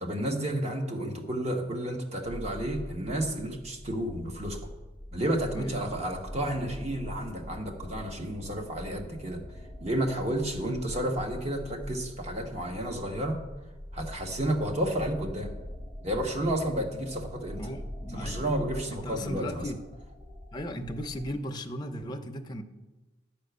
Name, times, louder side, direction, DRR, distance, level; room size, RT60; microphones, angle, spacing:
voice 1, 0.0-4.6 5.1-9.4 9.8-13.4 13.9-15.5 16.0-17.7 18.1-19.7, right 1 dB, 35° right, 3 dB, 1.4 m, -31 dB
sound 1, 2.2-21.4, equal, 15° right, 0.7 m, -43 dB
voice 2, 5.5-6.0 17.6-18.6 18.9-19.8 20.5-22.6, equal, 20° left, 4 dB, 0.7 m, -37 dB
10.5 x 5.9 x 8.0 m, 1.1 s
head